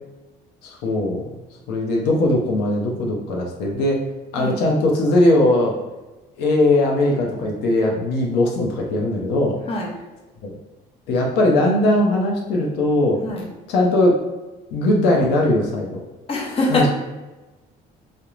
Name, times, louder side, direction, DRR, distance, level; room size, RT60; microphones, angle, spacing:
voice 1, 0.6-1.4 1.7-4.0 4.3-5.7 6.4-9.6 10.4-10.5 11.1-13.2 13.7-14.2 14.7-16.0 16.7-16.9, left 1 dB, 90° left, -1 dB, 0.6 m, -19 dB
voice 2, 13.1-13.5 16.3-16.9, left 2 dB, 35° left, -2 dB, 0.7 m, -23 dB
2.4 x 2.1 x 3.0 m, 1.1 s
cardioid pair, 110°, 17 cm